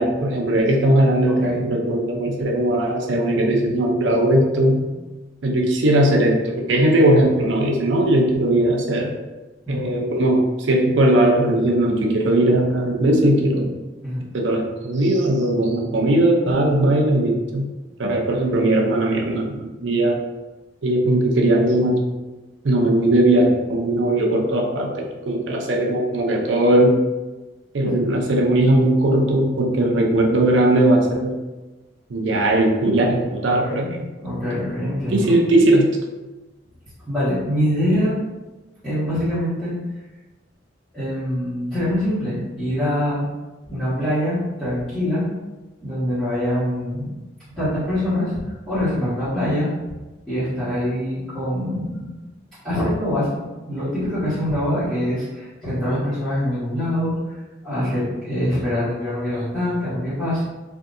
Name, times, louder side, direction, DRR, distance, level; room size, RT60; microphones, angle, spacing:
voice 1, 0.0-4.9 5.4-9.1 9.7-13.7 14.3-17.7 18.0-20.2 20.8-22.0 22.6-27.0 27.7-31.4 32.1-34.1 35.1-35.9, right 1 dB, 70° right, 1 dB, 0.6 m, -19 dB
voice 2, 33.4-33.9 34.2-35.4 37.0-38.1 38.8-39.7 40.9-43.2 43.7-45.3 45.8-47.1 47.5-49.7 50.3-52.1 52.6-57.4 57.6-60.4, left 1 dB, ahead, -17 dB, 1.3 m, -24 dB
3.5 x 2.7 x 2.6 m, 1.2 s
head